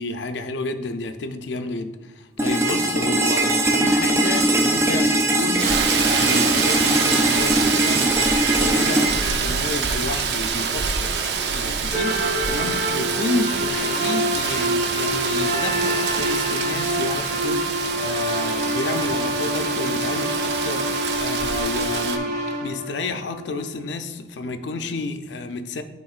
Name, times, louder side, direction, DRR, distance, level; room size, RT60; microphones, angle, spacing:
voice 1, 0.0-11.1 11.5-22.4 22.6-25.8, left 2 dB, 75° left, 0.5 m, -30 dB
sound 1, 2.4-10.4, right 1 dB, 15° right, 0.5 m, -21 dB
Rain, 5.6-22.2, right 6 dB, 65° right, 0.5 m, -26 dB
sound 2, 11.9-23.7, right 1 dB, 40° right, 0.9 m, -26 dB
11.5 x 3.9 x 2.4 m
head